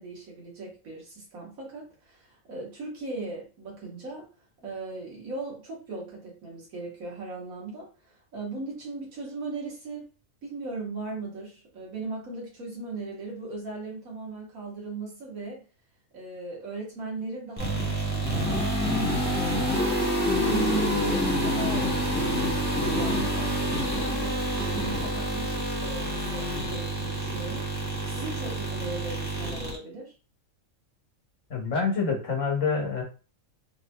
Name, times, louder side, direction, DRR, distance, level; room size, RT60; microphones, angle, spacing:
voice 1, 0.0-4.3 4.6-10.1 10.4-15.6 16.1-18.7 19.2-20.0 20.4-22.1 22.7-27.7 28.0-30.1, right 3 dB, 85° right, -3 dB, 1.7 m, -38 dB
sound 1, 17.6-29.8, equal, 10° left, 0.9 m, -27 dB
voice 2, 31.5-33.0, left 5 dB, 70° left, 0 dB, 1.4 m, -26 dB
4.0 x 2.6 x 2.3 m, 0.34 s
omnidirectional pair, 1.4 m